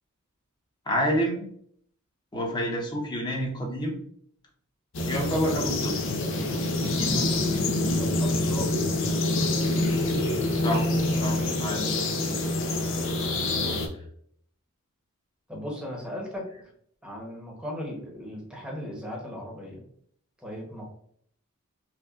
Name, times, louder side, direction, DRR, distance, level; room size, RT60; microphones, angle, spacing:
voice 1, 0.9-1.4 2.3-4.0 5.1-6.0 6.9-7.4 10.5-10.9 11.2-12.0, equal, 20° left, -1 dB, 0.9 m, -29 dB
sound 1, 4.9-13.9, left 2 dB, 60° left, 0.6 m, -26 dB
voice 2, 8.0-8.9 13.3-13.9 15.5-16.5 17.0-19.8 20.4-20.9, left 1 dB, 5° right, -2 dB, 1.0 m, -37 dB
5.6 x 2.3 x 2.4 m, 0.65 s
head